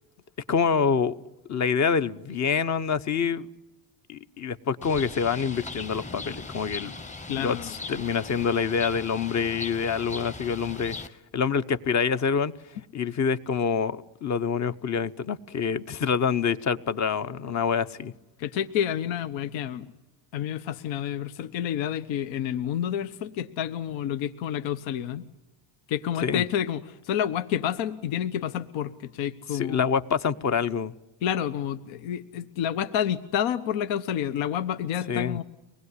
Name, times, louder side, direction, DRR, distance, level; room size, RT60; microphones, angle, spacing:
voice 1, 0.5-1.1 1.5-3.5 4.1-6.9 7.4-11.0 11.3-12.5 12.9-18.1 26.2-26.4 29.5-30.9 35.1-35.4, left 6 dB, 35° left, 0.9 m, -26 dB
Bird, 4.8-11.1, left 3 dB, 15° left, 1.0 m, -39 dB
voice 2, 7.3-7.7 18.4-19.9 20.3-25.2 25.9-29.9 31.2-35.4, left 9 dB, 70° left, 1.2 m, -29 dB
24.5 x 20.0 x 9.7 m
cardioid pair, 130°, 47 cm